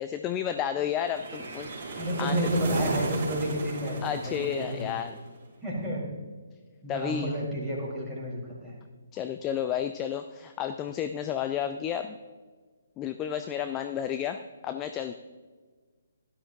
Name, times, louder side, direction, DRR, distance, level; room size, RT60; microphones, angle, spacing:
voice 1, 0.0-2.4 4.0-5.1 6.9-7.4 9.1-12.2 13.0-15.1, left 9 dB, 20° left, 9 dB, 0.4 m, -32 dB
sound 1, 1.0-5.3, right 2 dB, 35° right, 3.3 m, -34 dB
voice 2, 2.0-4.9 5.6-6.1 6.8-8.8, right 1 dB, 5° right, -8 dB, 3.9 m, -31 dB
17.0 x 11.5 x 2.7 m, 1.5 s
figure-of-eight pair, 135°, 0 cm